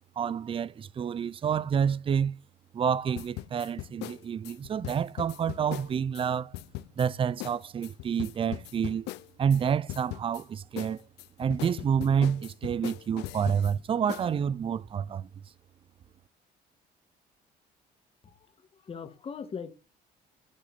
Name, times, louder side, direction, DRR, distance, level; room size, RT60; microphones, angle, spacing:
voice 1, 0.2-2.4 2.7-6.5 7.0-9.1 9.4-11.0 11.4-15.3, right 7 dB, 30° right, 0.5 m, -28 dB
sound 1, 3.2-6.3 6.5-7.1 7.4-7.6 7.8-9.6 9.9-10.4 10.8-13.7 14.1-14.3, left 17 dB, 85° left, 0.5 m, -39 dB
voice 2, 18.2-19.7, left 6 dB, 35° left, 1.6 m, -41 dB
8.7 x 8.4 x 4.1 m
cardioid pair, 110°, 17 cm